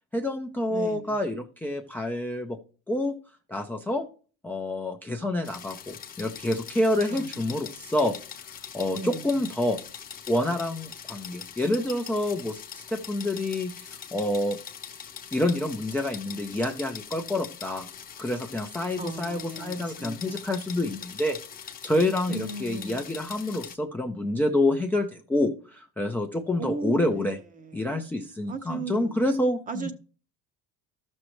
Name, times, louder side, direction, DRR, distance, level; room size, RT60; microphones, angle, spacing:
voice 1, 0.1-2.6 2.9-3.2 3.5-4.1 4.4-8.2 8.7-9.8 10.3-14.6 15.3-17.9 18.2-21.4 21.8-27.4 27.7-29.9, left 1 dB, 5° left, 0.4 m, -28 dB
voice 2, 0.7-1.2 7.1-7.6 8.9-9.5 19.0-20.4 22.3-23.4 26.6-28.1 28.5-29.3 29.7-29.9, right 3 dB, 25° right, 0.7 m, -37 dB
sound 1, 5.4-23.8, left 8 dB, 25° left, 0.9 m, -42 dB
13.5 x 6.3 x 3.0 m
cardioid pair, 155°, 34 cm